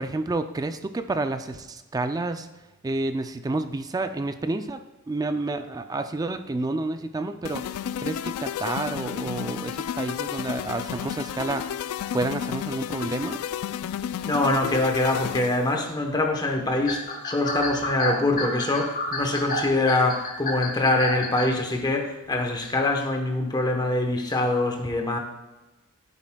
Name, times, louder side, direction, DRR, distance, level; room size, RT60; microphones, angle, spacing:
voice 1, 0.0-2.5 2.8-7.7 8.0-13.4, right 2 dB, 15° right, 9 dB, 0.3 m, -30 dB
sound 1, 7.4-15.8, left 9 dB, 75° left, 0.3 m, -32 dB
voice 2, 14.2-25.2, left 2 dB, 20° left, 3 dB, 1.0 m, -24 dB
sound 2, 16.9-21.6, left 2 dB, 40° left, 1.2 m, -29 dB
10.5 x 9.0 x 2.3 m, 1.1 s
head